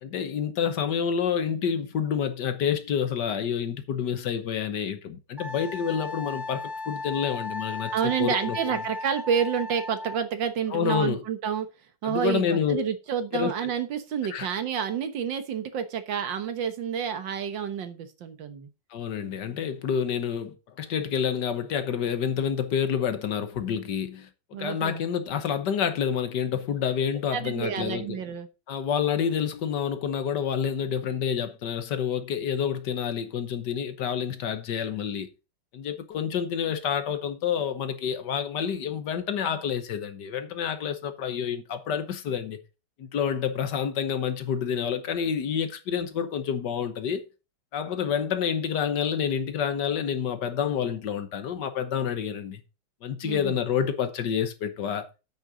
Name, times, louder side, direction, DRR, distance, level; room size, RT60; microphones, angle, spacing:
voice 1, 0.0-7.9 8.2-8.6 10.7-11.2 12.0-12.8 13.3-13.5 14.3-14.5 18.9-28.2 28.7-35.3 35.7-42.6 43.0-47.2 47.7-52.6 53.0-55.1, left 8 dB, 65° left, 1.6 m, -28 dB
Wind instrument woodwind instrument, 5.4-10.2, left 3 dB, ahead, 2.9 m, -36 dB
voice 2, 7.9-11.7 12.0-18.7 24.5-25.0 27.3-28.5 53.2-53.6, right 8 dB, 75° right, 1.9 m, -29 dB
8.7 x 6.5 x 5.0 m
omnidirectional pair, 2.0 m